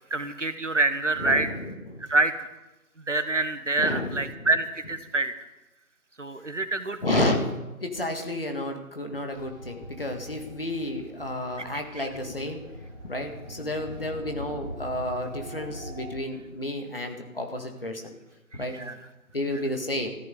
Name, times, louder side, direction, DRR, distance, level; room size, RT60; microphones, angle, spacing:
voice 1, 0.1-1.5 2.0-2.5 3.0-5.3 6.2-7.0 11.6-11.7 11.9-12.1 18.5-19.0, right 2 dB, 55° right, 10 dB, 1.2 m, -26 dB
voice 2, 1.2-2.1 3.8-4.5 6.4-6.5 7.0-7.4 7.8-12.7 13.0-18.2 18.5-18.8 19.3-20.1, left 1 dB, 40° left, 4 dB, 1.8 m, -31 dB
sound 1, 9.3-16.1, equal, 20° left, 6.9 m, -42 dB
19.0 x 14.0 x 3.9 m, 1.0 s
figure-of-eight pair, 175°, 45 cm